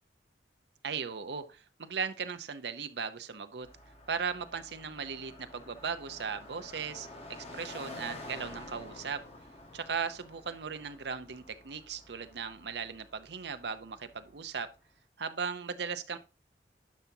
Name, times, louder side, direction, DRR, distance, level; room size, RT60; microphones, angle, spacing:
voice 1, 0.8-3.7 4.1-7.1 7.5-9.2 9.7-14.7 15.2-16.2, right 6 dB, 75° right, 0.7 m, -37 dB
Car passing by, 3.6-14.7, left 2 dB, 35° left, 1.7 m, -49 dB
10.5 x 5.9 x 2.7 m
head